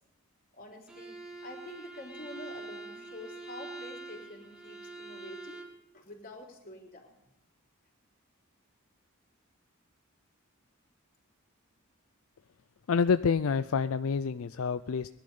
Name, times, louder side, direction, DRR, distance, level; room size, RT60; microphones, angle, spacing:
voice 1, 0.5-5.6 5.9-7.1, left 1 dB, 45° left, 0 dB, 3.8 m, -47 dB
Bowed string instrument, 0.9-5.8, right 3 dB, 5° right, 1.8 m, -45 dB
voice 2, 12.9-15.1, left 5 dB, 75° left, 13 dB, 0.4 m, -27 dB
20.0 x 11.5 x 5.5 m, 0.85 s
head